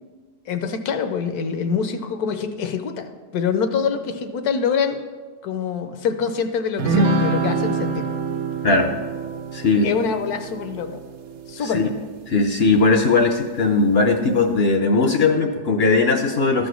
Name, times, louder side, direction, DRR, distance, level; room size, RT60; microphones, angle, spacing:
voice 1, 0.5-5.0 5.4-8.1 9.8-11.0 11.5-12.0, left 6 dB, 75° left, 8 dB, 1.3 m, -25 dB
sound 1, 6.8-12.4, right 3 dB, 65° right, 1.1 m, -26 dB
voice 2, 9.5-9.9 11.6-11.9 12.3-16.7, left 3 dB, 55° left, 5 dB, 0.7 m, -18 dB
13.0 x 5.1 x 6.2 m, 1.4 s
omnidirectional pair, 1.7 m